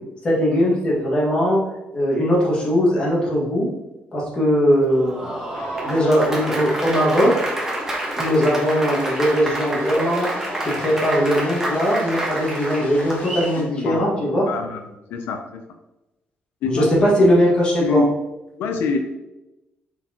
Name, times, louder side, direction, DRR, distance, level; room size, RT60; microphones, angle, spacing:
voice 1, 0.2-1.6 1.9-3.7 4.1-5.3 5.8-7.4 8.2-10.3 10.6-14.5 16.7-18.0, equal, 25° left, -5 dB, 1.9 m, -19 dB
Applause, 4.8-13.5, right 1 dB, 10° right, 1.0 m, -28 dB
sound 1, 5.5-13.6, left 1 dB, 40° left, 1.4 m, -36 dB
voice 2, 13.6-14.1 14.4-14.8 15.1-15.6 16.6-17.0 17.8-18.0 18.6-19.0, left 5 dB, 85° left, 5 dB, 0.6 m, -25 dB
7.0 x 4.5 x 3.0 m, 0.97 s
cardioid pair, 170°, 4 cm